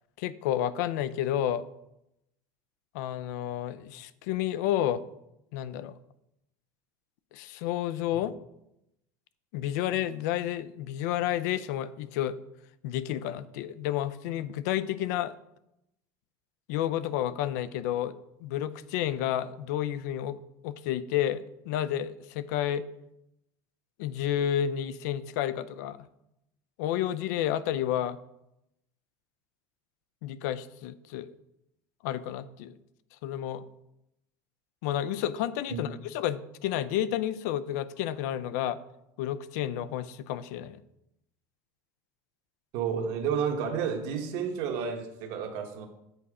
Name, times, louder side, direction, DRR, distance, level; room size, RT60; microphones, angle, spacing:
voice 1, 0.2-1.6 2.9-5.0 5.5-6.0 7.3-8.3 9.5-12.4 12.8-15.3 16.7-20.4 20.6-22.8 24.0-26.0 26.8-28.2 30.2-31.3 32.0-32.8 33.2-33.6 34.8-38.8 39.2-40.8, left 11 dB, 75° left, 15 dB, 0.4 m, -30 dB
voice 2, 42.7-45.9, right 7 dB, 60° right, 4 dB, 1.2 m, -31 dB
8.1 x 4.2 x 4.9 m, 0.84 s
cardioid pair, 155°, 9 cm